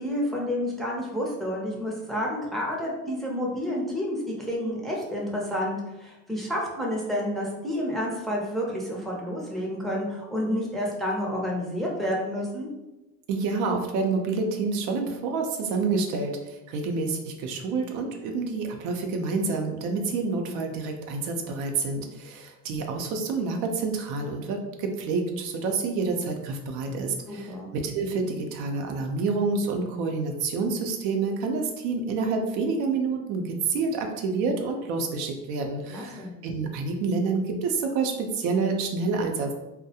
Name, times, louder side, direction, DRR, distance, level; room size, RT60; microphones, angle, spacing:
voice 1, 0.0-12.7 27.3-27.7 35.9-36.3, equal, ahead, -3 dB, 0.5 m, -30 dB
voice 2, 13.3-39.5, right 4 dB, 75° right, 3 dB, 0.5 m, -28 dB
2.3 x 2.0 x 2.7 m, 1.0 s
supercardioid pair, 105°, 31 cm